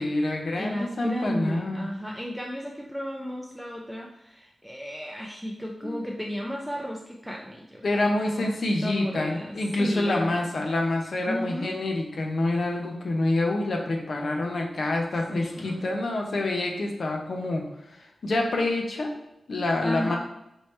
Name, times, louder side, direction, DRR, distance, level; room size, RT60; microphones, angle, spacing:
voice 1, 0.0-1.9 5.8-5.9 7.8-17.6 17.9-19.1 19.5-20.2, left 2 dB, 60° left, 1 dB, 0.7 m, -27 dB
voice 2, 0.5-8.5 8.8-10.4 11.3-11.8 15.3-15.8 19.8-20.2, equal, ahead, -1 dB, 0.4 m, -34 dB
4.5 x 3.0 x 3.2 m, 0.85 s
wide cardioid pair, 120°, 0 cm